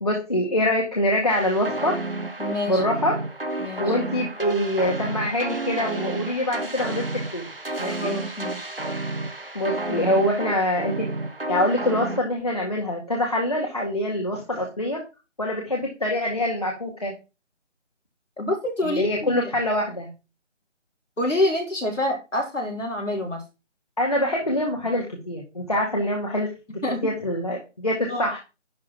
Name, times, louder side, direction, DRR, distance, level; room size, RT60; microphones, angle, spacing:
voice 1, 0.0-1.9 2.7-3.1 3.8-7.0 7.3-7.4 7.8-8.1 9.5-11.1 11.5-15.0 15.4-17.1 18.8-20.1 24.0-26.5 27.0-28.4, left 1 dB, 30° left, -1 dB, 1.9 m, -24 dB
sound 1, 1.3-12.2, right 2 dB, 50° right, 1.3 m, -31 dB
voice 2, 2.4-2.8 3.6-3.8 8.0-8.7 18.4-19.5 21.2-23.4 26.8-27.1 28.1-28.3, left 1 dB, 80° left, 3 dB, 3.8 m, -26 dB
11.0 x 4.2 x 5.7 m, 0.29 s
figure-of-eight pair, 180°, 36 cm